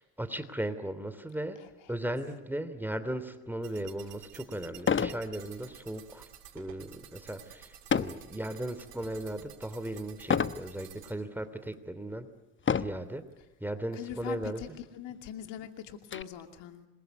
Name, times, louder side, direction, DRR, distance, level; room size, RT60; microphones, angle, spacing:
voice 1, 0.0-1.6 1.9-6.3 6.5-12.3 12.7-13.2 13.6-14.8, right 1 dB, 5° right, 11 dB, 3.0 m, -37 dB
sound 1, 3.6-11.1, right 10 dB, 90° right, 3.1 m, -52 dB
sound 2, 3.8-3.9 4.8-5.2 5.7-6.0 7.9-8.3 8.9-9.3 10.3-10.6 11.4-11.5 12.6-13.1 14.1-14.2 14.5-14.6 15.1-16.2, left 6 dB, 25° left, 1.1 m, -29 dB
voice 2, 14.0-14.5 14.9-16.9, left 10 dB, 65° left, 6 dB, 2.7 m, -42 dB
27.0 x 22.0 x 9.6 m, 0.98 s
hypercardioid pair, 70°, 47 cm